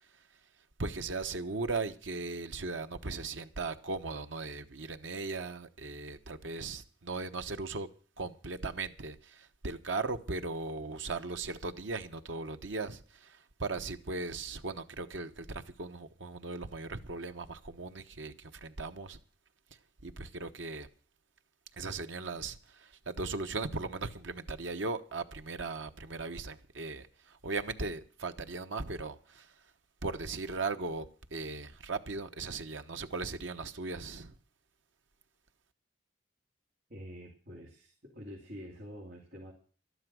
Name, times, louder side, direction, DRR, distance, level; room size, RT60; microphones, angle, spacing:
voice 1, 0.8-7.9 8.2-19.2 20.0-20.9 21.8-29.5 30.0-34.3, right 3 dB, 90° right, 1.1 m, -38 dB
voice 2, 36.9-39.5, equal, 55° right, 3.0 m, -47 dB
12.5 x 11.5 x 6.2 m
head